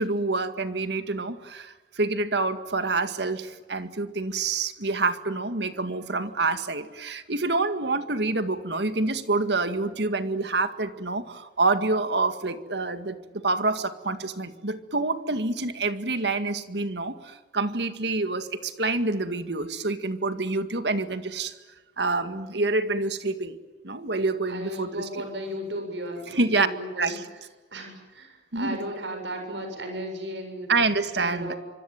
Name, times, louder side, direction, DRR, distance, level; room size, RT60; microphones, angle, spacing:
voice 1, 0.0-21.5 22.0-23.6 23.8-25.1 26.3-26.7 27.0-27.3 28.5-28.8 30.7-31.5, right 3 dB, 65° right, 10 dB, 2.1 m, -27 dB
voice 2, 24.5-27.2 27.7-30.7 31.2-31.6, right 1 dB, 80° right, 5 dB, 7.5 m, -35 dB
25.5 x 25.5 x 9.1 m, 1.2 s
head